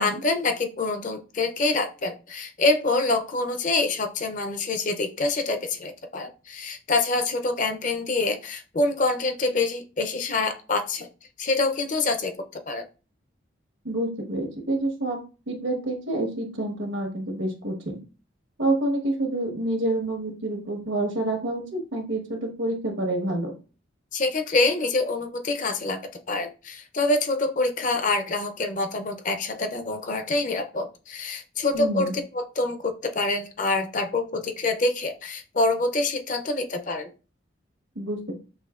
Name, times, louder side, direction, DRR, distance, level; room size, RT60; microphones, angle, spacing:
voice 1, 0.0-11.1 11.4-12.3 12.7-12.9 24.1-26.0 26.3-32.1 32.3-37.1, left 3 dB, 40° left, 6 dB, 0.5 m, -26 dB
voice 2, 13.8-15.2 15.5-18.0 18.6-23.5 31.7-32.1 37.9-38.3, right 1 dB, 90° right, 2 dB, 1.2 m, -28 dB
6.2 x 2.8 x 2.4 m, 0.35 s
head